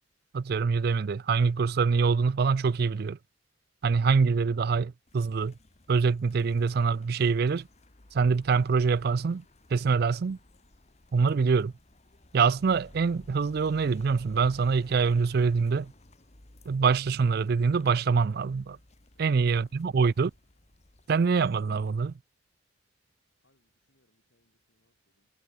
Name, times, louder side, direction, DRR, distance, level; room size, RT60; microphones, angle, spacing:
voice 1, 0.3-3.2 3.8-5.5 5.9-7.7 8.1-9.4 9.7-10.4 11.1-11.7 12.3-15.9 16.7-18.8 19.2-20.3 21.1-22.1, right 5 dB, 55° right, 0.4 m, -25 dB
sound 1, 5.1-22.2, left 1 dB, 35° left, 1.9 m, -56 dB
voice 2, 23.4-25.3, left 1 dB, 80° left, 5.5 m, -73 dB
head